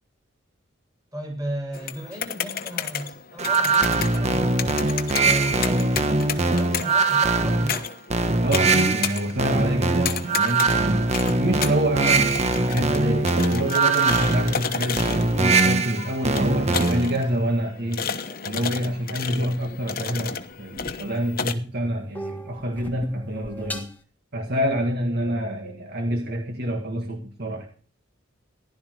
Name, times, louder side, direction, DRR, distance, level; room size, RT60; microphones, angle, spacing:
voice 1, 1.1-4.7 5.1-7.9, right 1 dB, 20° right, 3 dB, 6.8 m, -35 dB
sound 1, 1.7-21.5, left 7 dB, 45° left, 1.1 m, -33 dB
sound 2, 3.4-17.2, right 3 dB, 35° right, 1.1 m, -22 dB
voice 2, 8.4-18.1 18.4-23.9 24.3-27.7, equal, 50° right, 3 dB, 1.8 m, -27 dB
sound 3, 18.2-21.4 21.8-24.0, equal, 10° left, 1.6 m, -40 dB
15.5 x 12.0 x 4.7 m, 0.39 s
head